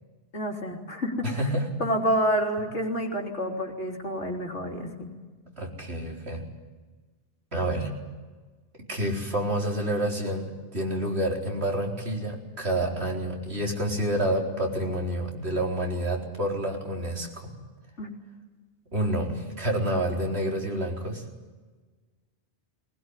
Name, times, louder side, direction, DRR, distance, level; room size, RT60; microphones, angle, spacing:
voice 1, 0.3-1.3 1.8-5.1 18.0-18.1, equal, 85° left, 1 dB, 3.7 m, -28 dB
voice 2, 1.2-1.7 5.6-6.4 7.5-7.9 8.9-17.5 18.9-21.2, right 1 dB, 65° right, 0 dB, 4.5 m, -28 dB
21.5 x 19.5 x 9.8 m, 1.4 s
omnidirectional pair, 1.2 m